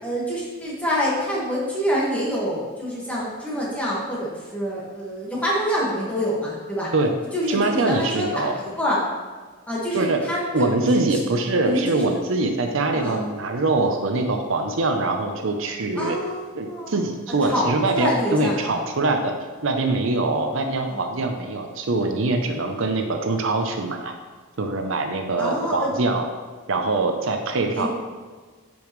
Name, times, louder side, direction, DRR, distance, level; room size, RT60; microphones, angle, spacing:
voice 1, 0.0-6.9 7.3-9.0 9.7-10.4 10.8-11.2 11.6-12.0 12.9-13.3 15.9-17.1 17.4-18.8 20.2-21.0 25.4-25.9 27.7-27.9, equal, 5° left, -6 dB, 1.6 m, -26 dB
voice 2, 7.5-8.5 9.9-10.2 10.5-16.2 16.5-19.3 19.6-24.1 24.6-26.3 26.7-27.9, right 2 dB, 65° right, 5 dB, 0.6 m, -23 dB
9.6 x 5.3 x 3.1 m, 1.4 s
head